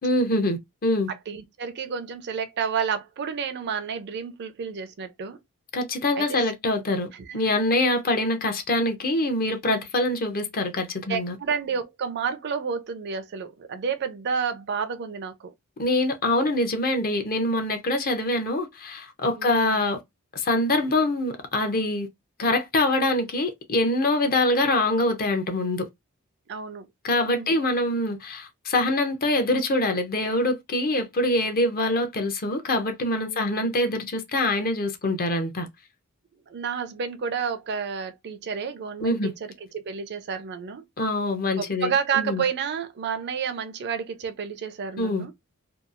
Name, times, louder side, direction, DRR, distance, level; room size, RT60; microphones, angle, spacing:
voice 1, 0.0-1.1 5.7-7.1 7.3-11.3 15.8-20.0 20.3-22.1 22.4-25.9 27.0-35.7 39.0-39.3 41.0-41.9 42.2-42.4 45.0-45.2, left 2 dB, 40° left, 0.6 m, -24 dB
voice 2, 1.1-5.4 6.2-6.4 7.1-7.5 11.1-15.5 19.4-19.8 26.5-26.9 27.3-27.6 33.2-33.9 36.5-40.8 41.6-45.3, right 6 dB, 50° right, 0.4 m, -30 dB
2.8 x 2.3 x 2.4 m
head